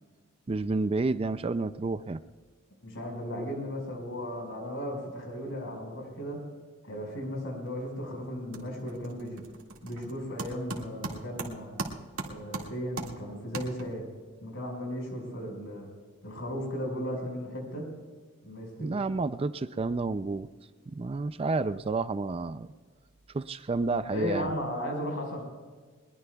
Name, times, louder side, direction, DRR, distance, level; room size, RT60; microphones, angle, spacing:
voice 1, 0.5-2.2 18.8-20.5 20.9-22.7 23.3-24.5, right 3 dB, 25° right, 13 dB, 0.4 m, -30 dB
voice 2, 2.8-6.4 6.8-9.4 9.8-11.8 12.2-14.1 14.4-15.9 16.2-17.9 18.4-19.0 24.1-25.4, equal, 60° left, 2 dB, 5.0 m, -36 dB
sound 1, 7.7-8.0 8.3-14.2, right 3 dB, 70° right, 2.0 m, -40 dB
22.0 x 21.5 x 2.3 m, 1.5 s
head